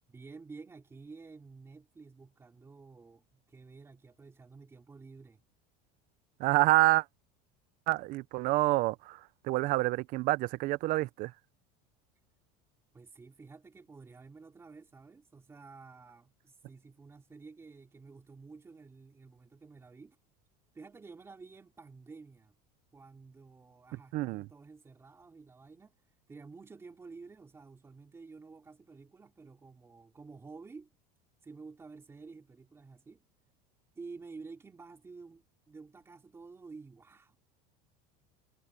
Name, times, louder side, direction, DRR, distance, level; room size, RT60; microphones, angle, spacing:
voice 1, 0.1-5.4 12.9-20.2 20.7-22.5 22.9-25.9 26.3-30.9 31.4-33.2 33.9-37.4, right 4 dB, 15° right, 3.2 m, -51 dB
voice 2, 6.4-7.0 7.9-9.2 9.4-11.3 24.1-24.4, right 19 dB, 45° right, 0.5 m, -27 dB
cardioid pair, 160°, 20 cm